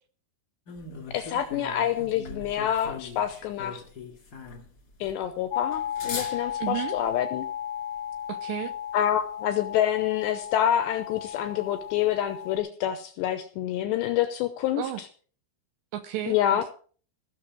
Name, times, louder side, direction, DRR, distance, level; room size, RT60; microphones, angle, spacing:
sound 1, 0.7-7.1, left 4 dB, 40° left, 1.3 m, -41 dB
voice 1, 1.1-3.8 5.0-7.5 8.9-15.1 16.3-16.6, left 11 dB, 80° left, 10 dB, 2.6 m, -27 dB
sound 2, 5.5-12.6, left 10 dB, 60° left, 1.5 m, -35 dB
voice 2, 6.6-7.0 8.3-8.7 14.8-15.0 15.9-16.7, right 13 dB, 85° right, 10 dB, 2.6 m, -33 dB
16.5 x 6.7 x 6.1 m, 0.43 s
omnidirectional pair, 5.8 m